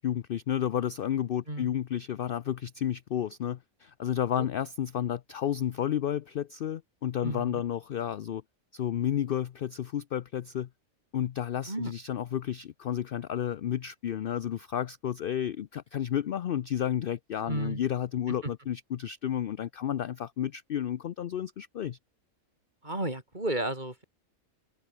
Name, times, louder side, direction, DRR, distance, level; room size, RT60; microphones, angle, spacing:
voice 1, 0.0-8.4 8.7-10.7 11.1-22.0, left 10 dB, 65° left, 0.5 m, -31 dB
voice 2, 7.2-7.6 11.7-11.9 17.5-17.8 18.4-18.5 22.8-24.0, right 1 dB, 30° right, 5.3 m, -33 dB
omnidirectional pair, 1.5 m